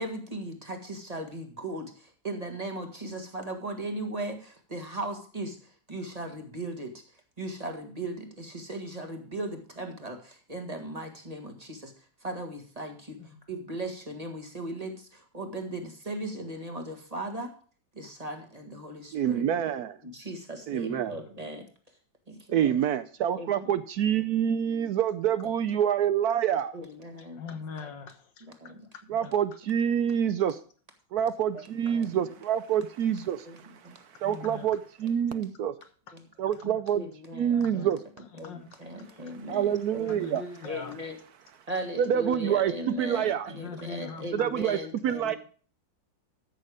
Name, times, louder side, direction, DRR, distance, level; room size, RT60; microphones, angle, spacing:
voice 1, 0.0-7.0 7.4-11.9 12.2-13.2 13.5-17.5 18.0-19.5 20.0-21.7 22.3-22.7 23.4-23.7 25.7-25.8 26.7-27.4 27.8-27.9 28.4-28.8 29.2-29.3 31.5-32.1 33.5-33.6 33.8-34.0 35.2-35.4 36.1-36.2 36.9-37.9 38.4-40.3 40.6-41.2 41.7-45.4, right 1 dB, 20° right, 4 dB, 1.7 m, -38 dB
voice 2, 19.1-20.0 20.7-21.1 22.5-26.8 29.1-30.6 31.1-33.5 34.2-35.7 36.4-37.0 37.3-38.0 39.5-40.4 42.0-42.7 43.0-43.5 44.3-45.4, right 9 dB, 70° right, 12 dB, 1.0 m, -27 dB
voice 3, 20.9-21.2 22.7-22.8 27.3-28.7 29.1-29.3 34.2-34.7 36.4-36.8 37.5-38.0 38.3-39.2 40.0-40.9 43.5-44.5 45.2-45.4, left 5 dB, 90° left, 7 dB, 2.1 m, -43 dB
13.5 x 6.5 x 4.9 m, 0.42 s
omnidirectional pair, 1.9 m